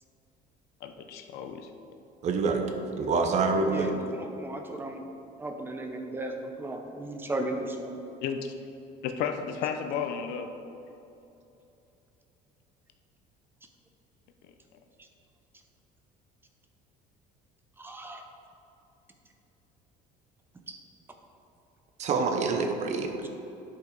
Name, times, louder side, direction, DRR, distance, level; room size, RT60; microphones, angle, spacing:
voice 1, 0.8-1.7 8.2-8.5 9.0-10.5, left 7 dB, 70° left, 6 dB, 0.7 m, -33 dB
voice 2, 2.2-2.7 3.0-3.9 22.0-23.3, right 4 dB, 45° right, 4 dB, 0.8 m, -26 dB
voice 3, 3.6-5.1 5.4-8.0 15.0-15.1 17.8-18.2 20.7-20.8 23.2-23.3, right 1 dB, 15° right, 4 dB, 0.7 m, -35 dB
10.5 x 5.7 x 3.9 m, 2.9 s
cardioid pair, 145°, 17 cm